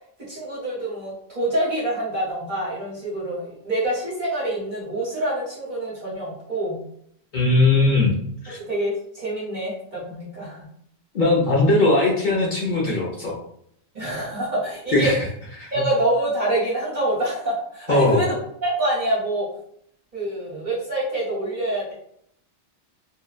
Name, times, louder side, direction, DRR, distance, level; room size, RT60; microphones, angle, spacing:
voice 1, 0.3-6.8 8.5-10.7 13.9-15.1 15.7-18.4 18.6-19.5 20.1-21.9, right 1 dB, 45° right, -7 dB, 1.0 m, -26 dB
voice 2, 7.3-8.1 8.4-8.6 11.1-13.4 14.9-15.3 15.6-15.7 17.9-18.2, left 2 dB, 50° left, -3 dB, 0.7 m, -19 dB
2.7 x 2.1 x 2.4 m, 0.69 s
omnidirectional pair, 1.1 m